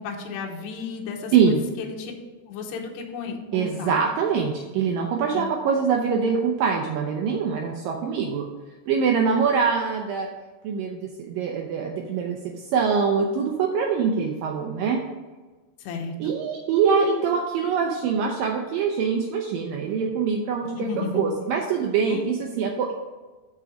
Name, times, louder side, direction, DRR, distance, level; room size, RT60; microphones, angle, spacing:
voice 1, 0.0-2.1 2.5-4.0 5.3-5.5 15.8-16.3 20.7-21.4 22.1-22.2, left 5 dB, 85° left, 0 dB, 3.1 m, -33 dB
voice 2, 1.3-1.6 3.5-8.5 8.9-10.3 10.6-12.4 12.7-15.0 16.2-20.9 21.1-22.9, right 6 dB, 85° right, 1 dB, 1.9 m, -24 dB
6.9 x 6.1 x 5.0 m, 1.3 s
omnidirectional pair, 4.9 m